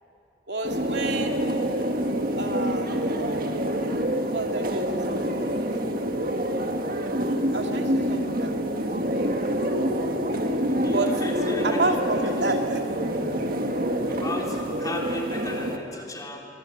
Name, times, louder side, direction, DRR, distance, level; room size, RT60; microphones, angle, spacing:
voice 1, 0.5-1.4 2.3-3.3 3.7-3.9 4.3-4.9 5.2-5.9 7.2-8.5 8.8-8.9 10.9-11.2 11.6-12.8 16.0-16.1, right 3 dB, 80° right, 3 dB, 2.4 m, -30 dB
sound 1, 0.6-15.8, equal, 55° right, 1.8 m, -26 dB
voice 2, 10.6-11.8 12.4-12.5 13.2-13.3 14.1-16.4, left 1 dB, 20° left, 0 dB, 3.5 m, -36 dB
24.5 x 24.0 x 8.6 m, 2.7 s
head